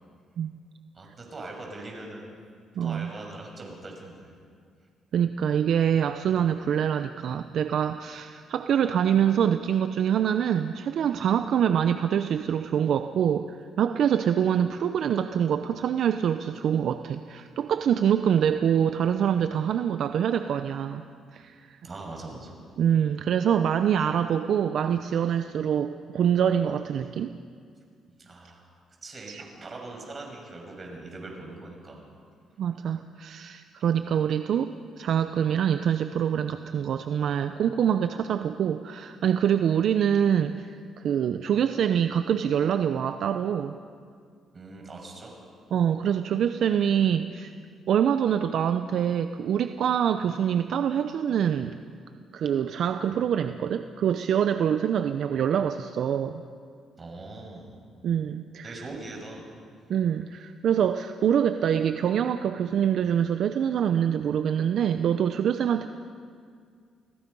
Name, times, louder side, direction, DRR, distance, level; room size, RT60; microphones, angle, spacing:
voice 1, 0.9-2.3 2.8-4.4 21.8-22.5 28.2-28.7 29.0-32.0 44.5-45.3 57.0-57.8 58.6-59.5, right 2 dB, 35° right, 1 dB, 6.6 m, -41 dB
voice 2, 2.8-3.1 5.1-21.0 21.3-21.8 22.8-27.3 29.3-29.4 32.6-43.8 45.7-47.5 47.9-51.8 52.3-56.4 58.0-58.9 59.9-65.9, right 8 dB, 70° right, 9 dB, 0.7 m, -25 dB
30.0 x 19.5 x 5.5 m, 2.2 s
cardioid pair, 90°, 0 cm